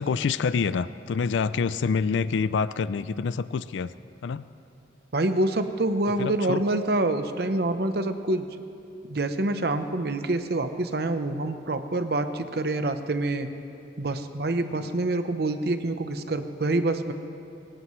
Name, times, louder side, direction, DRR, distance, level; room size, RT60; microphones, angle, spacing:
voice 1, 0.0-3.9 4.2-4.4 6.2-6.6 14.8-14.9, left 5 dB, 90° left, 15 dB, 0.4 m, -27 dB
voice 2, 5.1-8.5 9.1-13.5 14.0-17.1, right 2 dB, 60° right, 9 dB, 0.8 m, -26 dB
24.5 x 16.5 x 3.2 m, 2.8 s
head